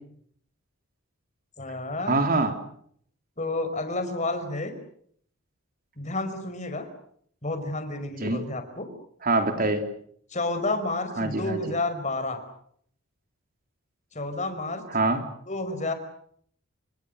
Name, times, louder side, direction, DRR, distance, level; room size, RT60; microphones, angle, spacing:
voice 1, 1.6-2.2 3.4-4.7 6.0-6.9 7.4-8.9 10.3-12.4 14.1-14.8 15.5-15.9, left 2 dB, 30° left, 8 dB, 5.1 m, -30 dB
voice 2, 2.1-2.5 8.2-8.4 9.2-9.8 11.2-11.6 14.9-15.2, right 2 dB, 40° right, 6 dB, 3.5 m, -24 dB
29.5 x 26.5 x 6.6 m, 0.65 s
head